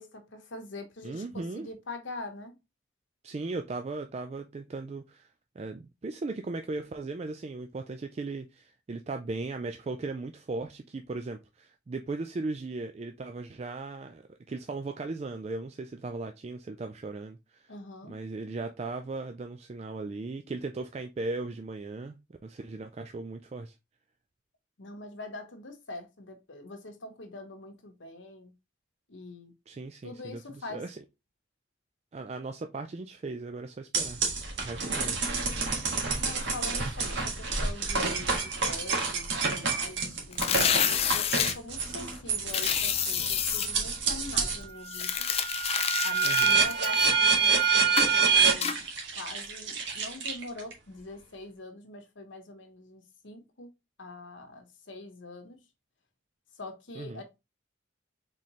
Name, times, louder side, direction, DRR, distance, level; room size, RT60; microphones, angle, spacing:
voice 1, 0.0-2.5 17.7-18.2 24.8-28.5 29.1-29.5 30.0-30.8 34.8-35.1 36.2-45.3 46.0-48.9 49.2-53.7 54.0-55.6 56.6-57.2, left 2 dB, 80° left, 1.1 m, -43 dB
voice 2, 1.0-1.7 3.2-5.3 5.6-17.7 18.1-23.7 29.7-31.0 32.1-34.2 34.6-35.2 46.2-46.6 57.0-57.2, right 3 dB, 35° right, 0.3 m, -37 dB
sound 1, 33.9-44.6 45.1-50.7, right 5 dB, 70° right, 1.5 m, -28 dB
sound 2, 40.3-41.5 42.5-43.7 44.9-47.5 48.0-48.2 48.6-48.8, left 8 dB, 30° left, 0.4 m, -28 dB
4.2 x 3.8 x 3.0 m
head